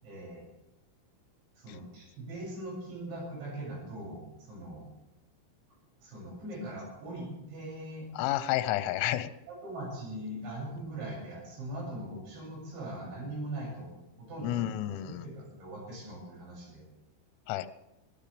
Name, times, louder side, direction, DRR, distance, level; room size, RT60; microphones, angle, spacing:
voice 1, 0.0-0.5 1.6-4.9 6.0-8.1 9.5-13.9 14.2-14.7 15.0-16.8, right 1 dB, 60° right, -2 dB, 9.0 m, -41 dB
voice 2, 8.2-9.3 14.4-15.3 17.5-17.7, left 13 dB, 80° left, 12 dB, 3.3 m, -30 dB
20.5 x 16.5 x 3.4 m, 0.98 s
omnidirectional pair, 5.8 m